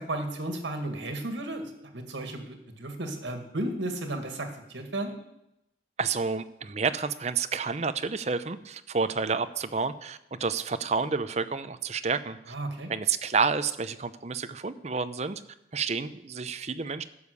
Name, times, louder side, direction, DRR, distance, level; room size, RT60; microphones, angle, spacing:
voice 1, 0.0-5.1 12.5-12.9, right 1 dB, 80° right, 5 dB, 2.1 m, -34 dB
voice 2, 6.0-12.5 12.9-15.4 15.7-17.0, right 5 dB, 35° right, 12 dB, 0.6 m, -29 dB
12.0 x 7.1 x 8.2 m, 0.84 s
head